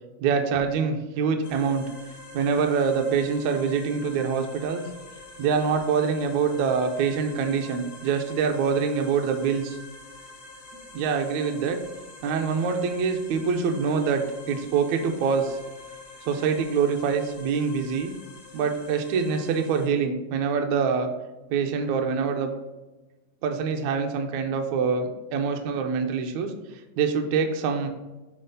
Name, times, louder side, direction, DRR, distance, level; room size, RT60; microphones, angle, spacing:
voice 1, 0.2-1.9 2.3-4.8 5.4-9.8 10.9-11.8 12.2-15.6 16.3-18.1 18.5-21.1 21.5-22.5 23.4-26.5 27.0-27.9, right 6 dB, 75° right, 4 dB, 1.7 m, -25 dB
sound 1, 1.4-19.9, left 3 dB, 70° left, 0.6 m, -46 dB
6.6 x 3.6 x 5.3 m, 1.1 s
omnidirectional pair, 3.9 m